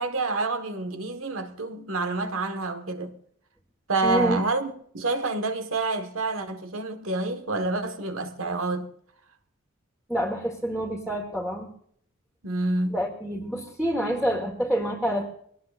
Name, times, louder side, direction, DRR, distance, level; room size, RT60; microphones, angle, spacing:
voice 1, 0.0-3.2 3.9-8.9 12.4-13.0, right 3 dB, 85° right, 1.6 m, -28 dB
voice 2, 4.0-4.4 10.1-11.7 12.9-15.3, equal, 5° right, 1.6 m, -27 dB
22.0 x 18.5 x 2.5 m
head